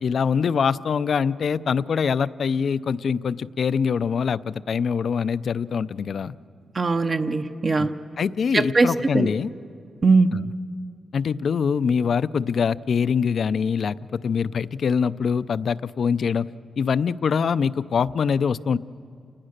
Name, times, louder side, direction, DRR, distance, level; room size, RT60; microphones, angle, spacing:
voice 1, 0.0-6.3 7.8-7.9 8.2-9.5 10.3-10.4 11.1-16.5 16.8-18.8, left 6 dB, 65° left, 16 dB, 0.5 m, -24 dB
voice 2, 6.7-7.9 8.5-9.3 10.0-10.3, right 3 dB, 40° right, 7 dB, 0.7 m, -20 dB
29.5 x 19.0 x 6.6 m, 2.4 s
cardioid pair, 90°, 0 cm